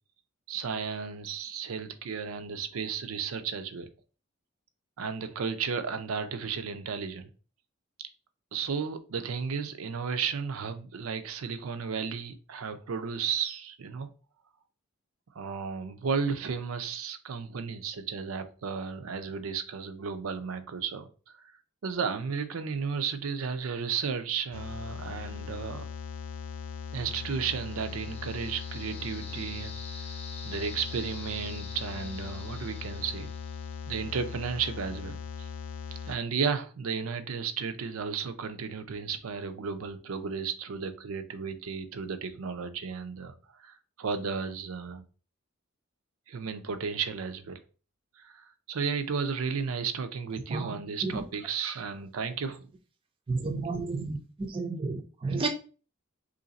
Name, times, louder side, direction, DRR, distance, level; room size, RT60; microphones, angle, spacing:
voice 1, 0.5-3.9 5.0-7.3 8.5-14.1 15.3-21.1 21.8-25.9 26.9-29.7 30.4-33.3 33.9-35.5 36.1-45.0 46.3-47.6 48.2-52.7, right 6 dB, 90° right, 0.5 m, -33 dB
sound 1, 24.5-36.2, left 6 dB, 80° left, 0.3 m, -39 dB
sound 2, 27.3-34.0, left 3 dB, 30° left, 0.6 m, -47 dB
voice 2, 53.3-55.5, right 3 dB, 25° right, 0.4 m, -32 dB
3.2 x 2.5 x 3.9 m
head